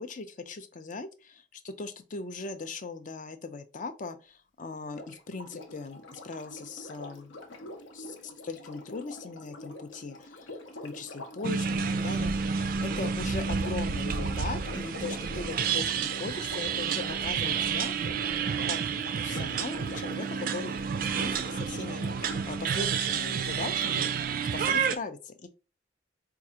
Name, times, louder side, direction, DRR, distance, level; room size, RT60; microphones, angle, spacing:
voice 1, 0.0-7.4 7.9-18.2 18.4-18.8 19.2-20.8 21.1-22.1 22.4-24.1 24.5-25.5, left 3 dB, 40° left, 0.5 m, -39 dB
Sink (filling or washing), 4.8-22.6 23.8-23.9, left 1 dB, 80° left, 0.7 m, -45 dB
sound 1, 11.4-25.0, right 6 dB, 45° right, 0.3 m, -30 dB
4.5 x 2.4 x 2.8 m
head